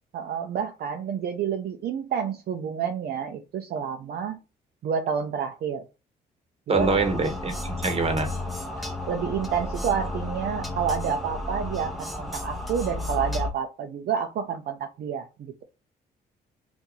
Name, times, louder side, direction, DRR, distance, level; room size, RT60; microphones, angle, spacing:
voice 1, 0.1-4.4 4.8-5.8 6.7-6.9 8.8-15.6, right 7 dB, 60° right, 4 dB, 0.6 m, -29 dB
sound 1, 6.7-13.5, left 2 dB, ahead, 1.0 m, -32 dB
voice 2, 6.7-8.3, right 4 dB, 35° right, 7 dB, 1.1 m, -25 dB
2.8 x 2.5 x 3.8 m, 0.28 s
supercardioid pair, 70°, 18 cm